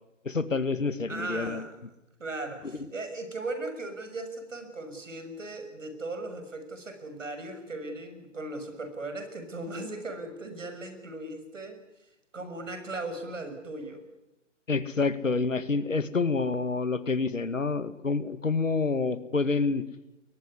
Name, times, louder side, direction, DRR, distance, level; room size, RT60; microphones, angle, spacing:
voice 1, 0.3-1.7 2.7-2.9 14.7-19.8, left 4 dB, 85° left, 14 dB, 2.1 m, -28 dB
voice 2, 1.1-1.8 2.2-11.8 12.3-14.0, right 2 dB, 80° right, 8 dB, 6.6 m, -37 dB
22.0 x 20.5 x 9.8 m, 0.91 s
figure-of-eight pair, 130°, 38 cm